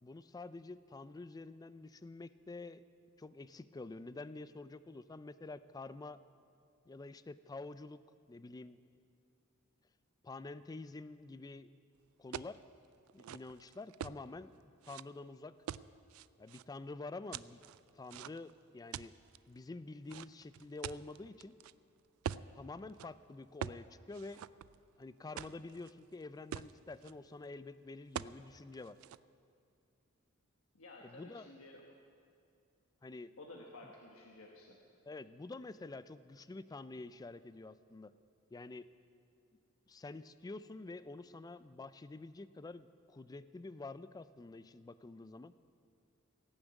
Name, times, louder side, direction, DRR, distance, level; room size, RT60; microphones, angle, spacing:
voice 1, 0.0-2.8 3.2-6.2 6.9-8.0 8.3-8.8 10.2-11.7 12.2-12.6 13.1-14.5 14.8-15.5 16.4-17.6 17.9-19.1 19.5-21.5 22.5-24.4 25.0-29.0 31.0-31.5 33.0-33.3 35.0-38.1 38.5-38.9 39.9-45.5, left 3 dB, 20° left, 15 dB, 0.3 m, -48 dB
sound 1, 12.3-12.6 13.1-14.2 14.8-15.0 15.7-16.6 17.3-18.5 18.9-19.4 20.1-21.7 22.2-22.5 22.9-23.1 23.6-23.8 24.1-25.0 25.4-25.9 26.2-26.3 26.5-27.1 28.2-28.4 28.7-29.2, right 9 dB, 75° right, 0.3 m, -44 dB
voice 2, 30.7-32.0 33.4-34.8, left 2 dB, 85° left, -1 dB, 1.3 m, -53 dB
17.5 x 7.2 x 8.1 m, 2.4 s
head